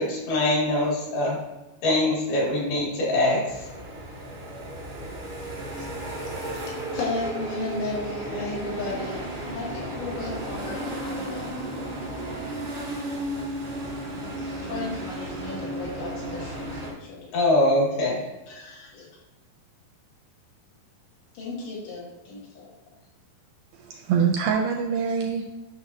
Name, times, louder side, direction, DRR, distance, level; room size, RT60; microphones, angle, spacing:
voice 1, 0.0-1.4 1.8-3.4 17.3-18.2, left 1 dB, 70° left, -3 dB, 4.1 m, -23 dB
sound 1, 3.5-16.9, right 1 dB, 35° right, 0.9 m, -34 dB
voice 2, 5.6-11.5 13.1-13.4 14.3-17.3 18.5-19.1 21.3-22.7, left 3 dB, 90° left, -6 dB, 4.6 m, -35 dB
voice 3, 23.7-25.6, right 6 dB, 80° right, 2 dB, 2.1 m, -25 dB
9.2 x 6.4 x 2.7 m, 1.1 s
omnidirectional pair, 4.8 m